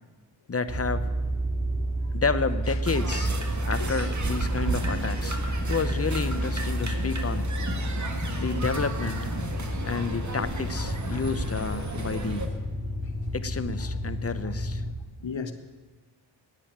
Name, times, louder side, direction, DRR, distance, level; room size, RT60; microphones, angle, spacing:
voice 1, 0.5-1.1 2.1-3.3 3.6-7.5 8.4-9.3 9.8-12.5 13.3-14.8, left 4 dB, 30° left, 0.7 m, -30 dB
sound 1, 0.7-14.9, equal, 15° right, 2.0 m, -30 dB
sound 2, 2.8-12.5, right 3 dB, 40° right, 1.7 m, -33 dB
voice 2, 15.2-15.5, left 5 dB, 75° left, 1.3 m, -37 dB
10.5 x 9.3 x 8.6 m
cardioid pair, 70°, 45 cm